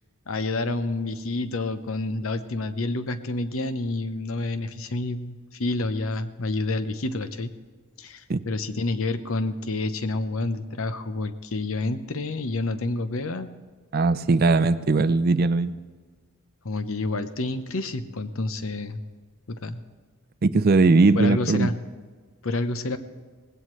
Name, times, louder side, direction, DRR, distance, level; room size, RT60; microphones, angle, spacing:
voice 1, 0.3-7.5 8.0-13.5 16.6-19.0 19.5-19.8 21.1-21.8 22.4-23.0, left 2 dB, 65° left, 11 dB, 0.8 m, -29 dB
voice 2, 13.9-15.8 20.4-21.7, right 3 dB, 45° right, 14 dB, 0.4 m, -19 dB
19.0 x 16.5 x 3.2 m, 1.4 s
head